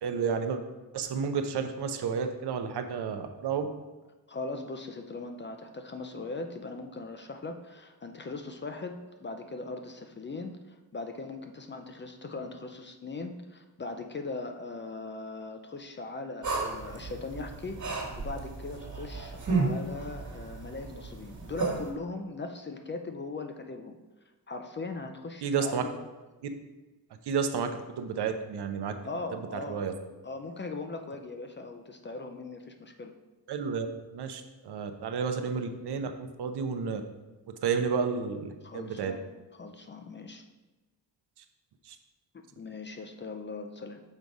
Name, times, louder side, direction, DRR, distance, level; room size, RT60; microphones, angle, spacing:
voice 1, 0.0-0.6 0.9-3.7 25.4-25.8 27.3-27.7 28.0-29.0 29.5-29.9 33.5-33.9 34.1-37.0 37.6-39.1 41.9-42.0, right 6 dB, 70° right, 7 dB, 0.7 m, -31 dB
voice 2, 4.3-24.0 24.5-26.0 29.0-29.8 30.2-33.1 38.6-39.3 39.6-40.4 42.5-44.0, left 3 dB, 25° left, 5 dB, 0.5 m, -39 dB
sound 1, 16.4-21.9, right 3 dB, 45° right, 1.6 m, -33 dB
6.4 x 4.0 x 4.7 m, 1.1 s
cardioid pair, 120°, 42 cm